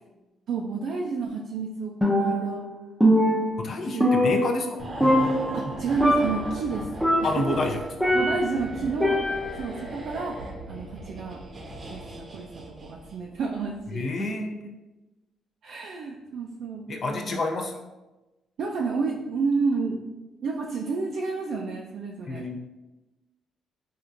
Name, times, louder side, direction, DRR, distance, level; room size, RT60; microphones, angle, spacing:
voice 1, 0.5-2.6 3.9-4.1 5.5-6.9 7.5-7.6 8.1-9.2 9.6-10.4 10.6-11.4 11.9-12.5 12.8-14.3 15.6-17.4 18.6-20.1 20.4-22.5, right 4 dB, 70° right, -1 dB, 0.3 m, -30 dB
Percussion, 2.0-2.7 3.0-4.8 5.0-5.7 6.0-6.5 7.0-8.6 9.0-9.7, equal, ahead, 0.6 m, -23 dB
voice 2, 3.6-4.8 7.2-8.2 13.9-14.7 16.9-17.8 22.3-22.6, left 3 dB, 50° left, 3 dB, 0.5 m, -29 dB
sound 1, 4.8-13.3 13.6-13.8, right 1 dB, 40° right, 0.7 m, -38 dB
4.3 x 2.4 x 2.5 m, 1.1 s
cardioid pair, 90°, 0 cm